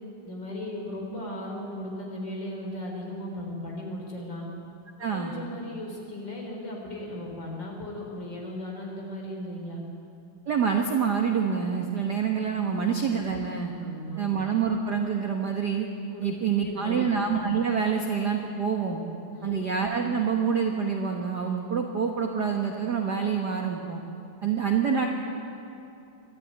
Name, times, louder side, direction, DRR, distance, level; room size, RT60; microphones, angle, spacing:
voice 1, 0.2-4.4 5.0-9.8 13.8-14.2 16.1-17.1 19.3-19.6, left 1 dB, 35° left, -1 dB, 4.4 m, -37 dB
voice 2, 5.0-5.3 10.5-13.7 14.2-15.9 16.2-19.0 19.4-24.0 24.4-25.1, right 6 dB, 50° right, 2 dB, 1.3 m, -26 dB
24.0 x 13.5 x 9.4 m, 2.7 s
omnidirectional pair, 3.5 m